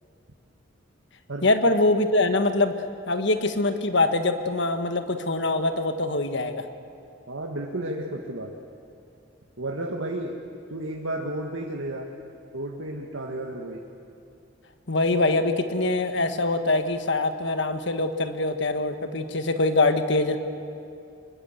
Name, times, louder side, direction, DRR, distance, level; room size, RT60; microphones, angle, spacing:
voice 1, 1.4-2.7 3.1-6.7 14.9-20.4, left 2 dB, 65° left, 8 dB, 1.5 m, -23 dB
voice 2, 7.3-8.5 9.6-10.3 10.7-12.1 12.5-13.8, right 1 dB, 85° right, 0 dB, 1.9 m, -32 dB
25.0 x 21.0 x 8.1 m, 2.7 s
head